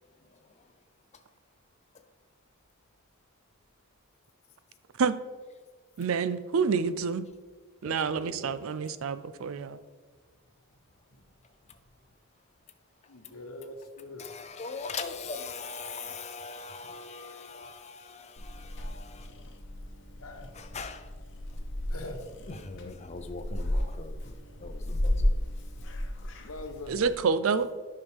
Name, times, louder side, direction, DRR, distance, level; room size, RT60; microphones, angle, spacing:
voice 1, 6.0-7.2 7.8-9.8 26.9-27.7, right 5 dB, 70° right, 13 dB, 0.4 m, -28 dB
voice 2, 7.8-8.6 13.2-13.3 14.2-19.3 20.5-21.0 22.5-24.3 24.6-25.3, left 4 dB, 30° left, 7 dB, 0.6 m, -41 dB
voice 3, 13.1-14.3 20.2-20.5 21.9-22.2 26.4-27.0, left 2 dB, 85° left, 5 dB, 1.1 m, -42 dB
Purr / Meow, 18.4-27.2, left 1 dB, 55° left, 0.9 m, -34 dB
9.8 x 5.7 x 3.5 m, 1.4 s
head